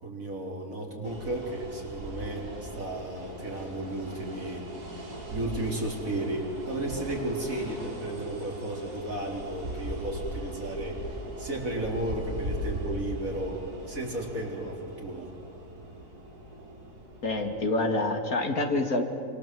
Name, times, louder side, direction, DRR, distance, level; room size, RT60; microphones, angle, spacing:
voice 1, 0.0-4.7 5.3-15.3, right 1 dB, 60° right, -1 dB, 4.5 m, -34 dB
sound 1, 1.0-17.6, right 1 dB, 85° right, 4.5 m, -39 dB
voice 2, 17.2-19.0, left 2 dB, 65° left, 4 dB, 2.7 m, -27 dB
27.5 x 27.0 x 7.8 m, 2.5 s
omnidirectional pair, 1.6 m